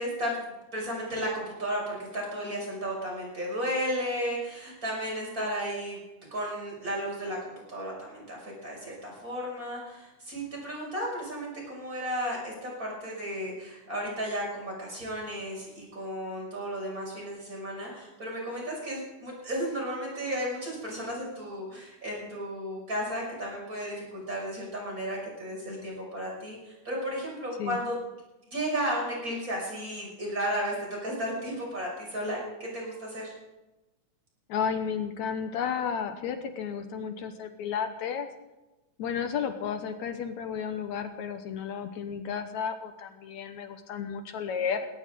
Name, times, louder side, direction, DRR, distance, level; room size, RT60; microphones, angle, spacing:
voice 1, 0.0-6.0 6.3-27.9 28.5-30.7 31.0-33.3, equal, 25° right, -2 dB, 6.6 m, -34 dB
voice 2, 34.5-38.3 39.0-44.9, left 7 dB, 70° left, 8 dB, 2.3 m, -32 dB
18.5 x 18.0 x 3.8 m, 1.0 s
omnidirectional pair, 3.7 m